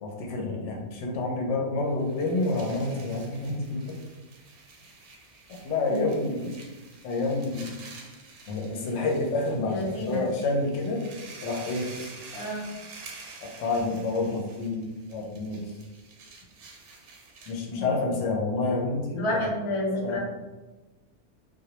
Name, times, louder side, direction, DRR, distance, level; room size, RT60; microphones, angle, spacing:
voice 1, 0.0-4.0 5.6-6.5 7.0-7.7 8.5-11.0 11.4-11.9 13.6-15.7 17.5-19.4 20.0-20.2, left 2 dB, 90° left, 0 dB, 0.9 m, -28 dB
sound 1, 1.9-17.7, right 3 dB, 80° right, 0.9 m, -48 dB
voice 2, 5.9-6.3 9.6-10.3 12.3-12.7 17.7-17.9 19.1-20.2, left 1 dB, 40° left, -3 dB, 0.4 m, -30 dB
2.2 x 2.0 x 2.8 m, 1.1 s
omnidirectional pair, 1.2 m